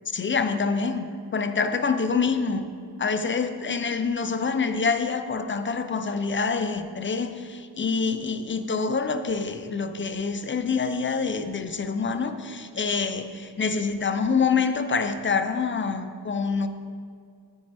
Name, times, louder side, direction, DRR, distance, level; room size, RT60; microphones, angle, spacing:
voice 1, 0.1-2.7 3.0-16.7, left 5 dB, 30° left, 9 dB, 0.5 m, -26 dB
8.8 x 8.4 x 3.4 m, 2.3 s
cardioid pair, 100°, 43 cm